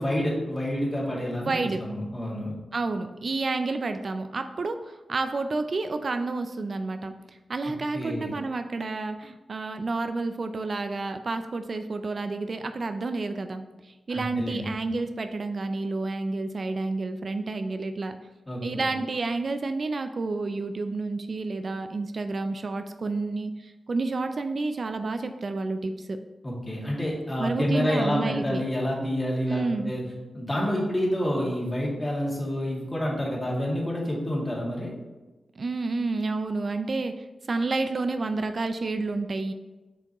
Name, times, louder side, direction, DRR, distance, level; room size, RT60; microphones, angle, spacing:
voice 1, 0.0-1.5 1.8-2.5 7.9-8.3 14.1-14.6 18.5-18.9 26.4-30.0 30.3-34.9, equal, 25° left, -3 dB, 2.1 m, -28 dB
voice 2, 1.4-1.8 2.7-4.8 5.1-7.1 7.5-18.1 18.6-26.2 27.4-28.6 29.5-29.9 35.6-37.1 37.5-39.5, right 3 dB, 60° right, 8 dB, 0.4 m, -30 dB
7.2 x 4.6 x 3.0 m, 1.1 s
cardioid pair, 45°, 0 cm